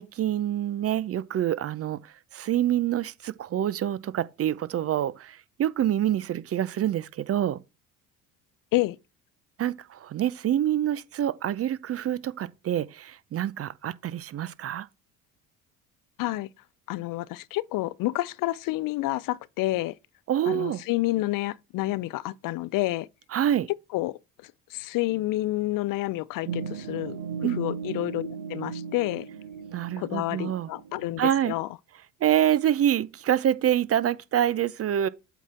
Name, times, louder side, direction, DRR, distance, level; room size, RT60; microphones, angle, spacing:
voice 1, 0.0-2.0 2.3-7.6 9.6-14.9 20.3-20.8 23.3-23.7 27.4-27.6 29.7-30.7 31.2-31.5 32.2-35.1, right 11 dB, 35° right, 0.6 m, -26 dB
voice 2, 16.2-16.5 16.9-19.9 20.5-23.1 23.9-24.2 24.7-29.3 30.0-31.7, left 18 dB, 50° left, 0.5 m, -29 dB
sound 1, 26.4-31.5, right 6 dB, 60° right, 1.0 m, -37 dB
8.2 x 4.0 x 4.3 m
hypercardioid pair, 65°, 42 cm